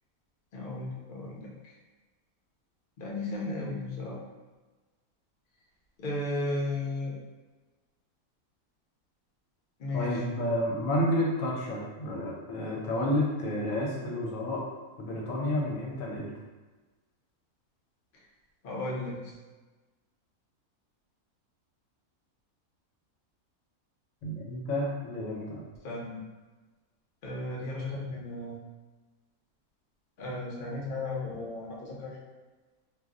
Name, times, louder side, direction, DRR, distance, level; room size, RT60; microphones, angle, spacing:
voice 1, 0.5-1.7 3.0-4.2 6.0-7.1 9.8-10.2 18.6-19.3 25.8-26.2 27.2-28.5 30.2-32.2, left 2 dB, 50° left, -4 dB, 0.7 m, -35 dB
voice 2, 9.9-14.6 15.0-16.3 24.2-25.6, left 1 dB, 70° left, -3 dB, 1.0 m, -30 dB
2.5 x 2.0 x 3.6 m, 1.3 s
omnidirectional pair, 1.5 m